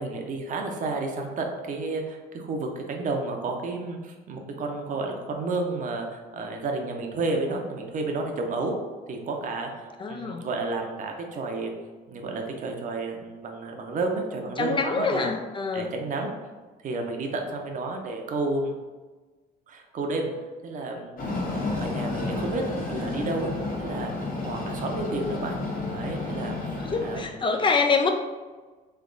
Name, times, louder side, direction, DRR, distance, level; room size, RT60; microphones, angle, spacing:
voice 1, 0.0-8.8 9.1-11.7 12.1-15.3 15.7-16.3 16.8-18.7 19.7-20.3 20.6-21.2 21.8-22.6 22.9-23.5 23.8-24.1 24.4-25.6 25.9-26.8 27.0-27.3, right 3 dB, 50° right, 2 dB, 0.7 m, -31 dB
voice 2, 10.0-10.4 14.6-15.9 26.8-28.1, left 4 dB, 30° left, 5 dB, 0.4 m, -25 dB
Train, 21.2-27.2, left 2 dB, 55° left, 1.1 m, -31 dB
3.4 x 3.4 x 3.8 m, 1.3 s
cardioid pair, 110°, 17 cm